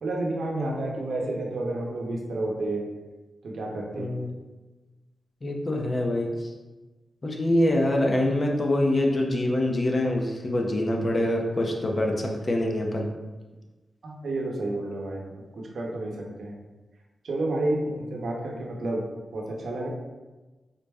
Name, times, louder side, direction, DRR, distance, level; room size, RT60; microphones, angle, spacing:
voice 1, 0.0-2.8 3.4-4.1 14.0-15.2 15.5-16.1 16.4-16.5 17.2-19.0 19.3-19.9, right 2 dB, 75° right, -1 dB, 0.7 m, -30 dB
voice 2, 4.0-4.3 5.4-6.5 7.2-13.1, left 1 dB, 35° left, 1 dB, 0.5 m, -25 dB
3.9 x 2.1 x 3.4 m, 1.2 s
wide cardioid pair, 95°, 0 cm